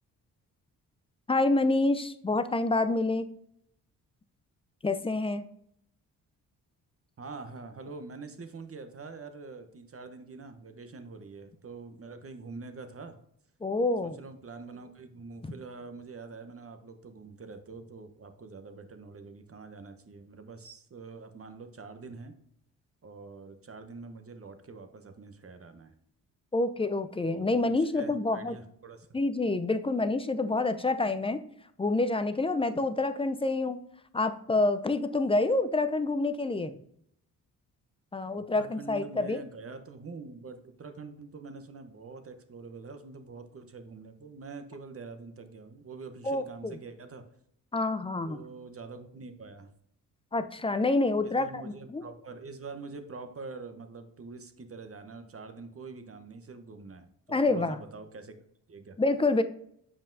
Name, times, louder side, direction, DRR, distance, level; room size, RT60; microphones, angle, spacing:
voice 1, 1.3-3.3 4.8-5.5 13.6-14.2 26.5-28.6 29.1-31.4 31.8-33.8 34.1-36.8 38.1-39.4 46.2-46.8 47.7-48.4 50.3-52.0 57.3-57.8 59.0-59.4, left 2 dB, 15° left, 11 dB, 0.4 m, -27 dB
voice 2, 7.2-13.2 14.0-22.3 23.0-25.9 27.2-29.1 38.5-47.3 48.2-49.7 51.2-58.4 58.7-59.0, right 4 dB, 30° right, 8 dB, 0.9 m, -45 dB
7.3 x 5.3 x 2.6 m, 0.70 s
hypercardioid pair, 40°, 44 cm